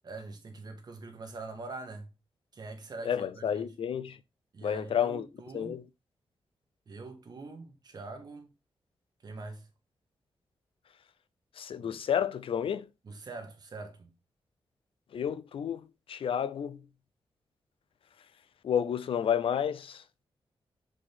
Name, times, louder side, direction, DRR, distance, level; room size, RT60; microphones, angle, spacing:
voice 1, 0.0-2.1 2.5-3.7 4.5-5.8 6.8-8.5 9.2-9.7 11.8-12.0 13.0-14.1, right 3 dB, 45° right, 1.7 m, -44 dB
voice 2, 3.1-4.2 4.6-5.3 5.5-5.8 11.6-12.9 15.1-16.8 18.6-20.0, left 8 dB, 70° left, 0.6 m, -31 dB
6.4 x 5.0 x 3.6 m
wide cardioid pair, 160°, 10 cm